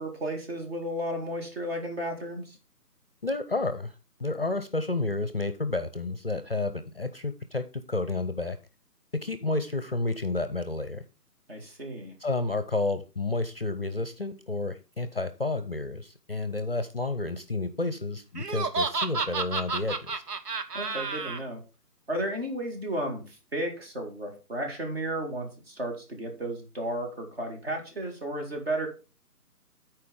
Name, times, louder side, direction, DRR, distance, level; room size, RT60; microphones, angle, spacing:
voice 1, 0.0-2.6 11.5-12.1 20.7-21.6 22.1-28.9, right 1 dB, 40° right, 2 dB, 2.3 m, -33 dB
voice 2, 3.2-3.9 4.2-8.6 9.2-11.0 12.2-20.1, left 2 dB, 40° left, 10 dB, 0.6 m, -30 dB
Laughter, 18.3-21.4, right 4 dB, 80° right, 0.9 m, -31 dB
13.5 x 4.6 x 3.7 m, 0.31 s
figure-of-eight pair, 150°, 47 cm